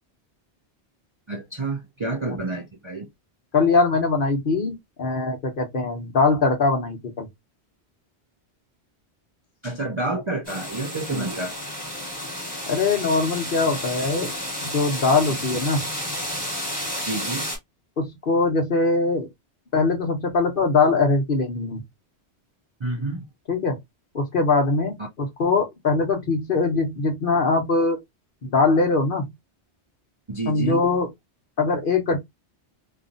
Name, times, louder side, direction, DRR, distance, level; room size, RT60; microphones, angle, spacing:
voice 1, 1.3-3.1 9.6-11.6 15.3-15.4 17.0-17.5 22.8-23.2 30.3-30.8, right 2 dB, 40° right, 0.4 m, -29 dB
voice 2, 3.5-7.3 11.1-11.2 12.7-14.3 14.6-15.8 18.0-19.3 19.7-21.8 23.5-23.8 24.1-28.0 28.4-29.3 30.5-31.1 31.6-32.2, left 3 dB, 55° left, 1.0 m, -22 dB
sound 1, 10.4-17.6, equal, 10° left, 1.3 m, -31 dB
2.8 x 2.4 x 2.5 m
omnidirectional pair, 1.1 m